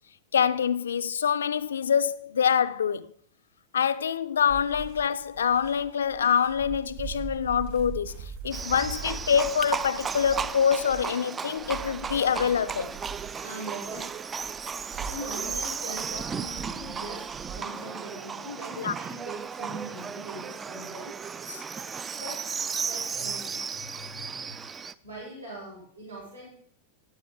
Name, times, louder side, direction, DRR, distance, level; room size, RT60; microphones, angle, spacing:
voice 1, 0.3-3.1 3.7-13.0 18.8-18.9 21.5-21.6, left 7 dB, 65° left, 0.4 m, -25 dB
sound 1, 4.5-17.5, right 6 dB, 50° right, 5.2 m, -42 dB
Livestock farm animals working animals, 8.5-24.9, right 6 dB, 20° right, 0.4 m, -35 dB
voice 2, 13.4-14.1 15.0-21.1 22.1-22.4 22.8-24.4 25.0-26.5, right 1 dB, 75° right, 4.7 m, -41 dB
13.0 x 10.0 x 3.6 m
figure-of-eight pair, 90°, 0 cm